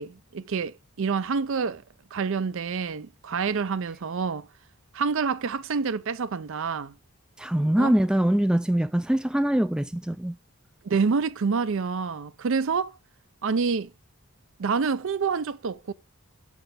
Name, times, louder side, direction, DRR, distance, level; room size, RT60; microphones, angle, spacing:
voice 1, 0.0-1.8 2.1-4.5 4.9-6.9 7.8-7.9 10.8-12.9 13.4-13.9 14.6-15.9, right 5 dB, 60° right, 0.5 m, -27 dB
voice 2, 7.4-10.4, right 1 dB, 5° right, 0.3 m, -23 dB
6.7 x 6.2 x 3.4 m
head